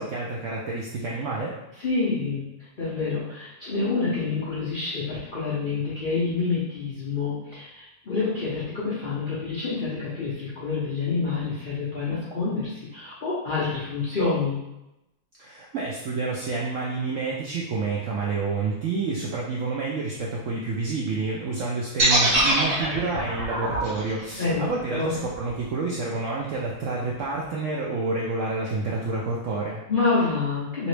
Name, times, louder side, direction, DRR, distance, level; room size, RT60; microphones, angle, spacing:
voice 1, 0.0-1.5 15.4-29.8, right 3 dB, 75° right, -3 dB, 0.7 m, -29 dB
voice 2, 1.8-2.5 2.8-14.6 24.4-25.1 29.9-30.9, left 4 dB, 60° left, -8 dB, 0.5 m, -27 dB
sound 1, 22.0-26.0, right 1 dB, 50° right, 1.4 m, -24 dB
3.0 x 2.9 x 3.2 m, 0.92 s
omnidirectional pair, 1.8 m